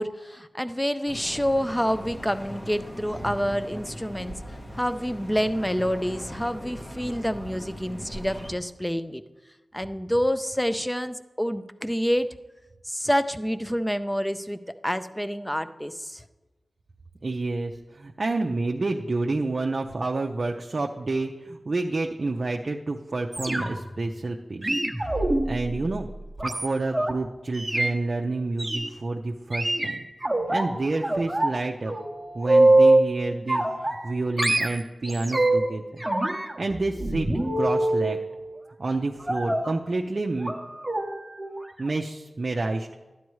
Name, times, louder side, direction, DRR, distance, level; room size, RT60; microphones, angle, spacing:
voice 1, 0.0-4.3 4.7-9.2 9.7-12.3 12.9-16.2, equal, 5° left, 11 dB, 0.5 m, -27 dB
sound 1, 1.1-8.5, equal, 35° left, 1.1 m, -39 dB
voice 2, 17.2-24.8 25.4-26.1 26.4-30.1 30.5-31.9 32.3-36.0 36.6-37.3 37.6-38.2 38.8-40.5 41.8-42.9, right 3 dB, 50° right, 2 dB, 0.5 m, -29 dB
sound 2, 23.3-24.0 24.6-27.1 27.6-27.9 28.6-28.9 29.5-30.7 31.0-31.6 31.9-33.1 33.5-34.1 34.4-35.7 36.0-38.1 39.3-39.7 40.4-40.6 40.8-41.1 41.4-41.6 41.9-42.0, right 2 dB, 15° right, 1.0 m, -24 dB
12.0 x 9.3 x 3.1 m, 1.2 s
wide cardioid pair, 70°, 0 cm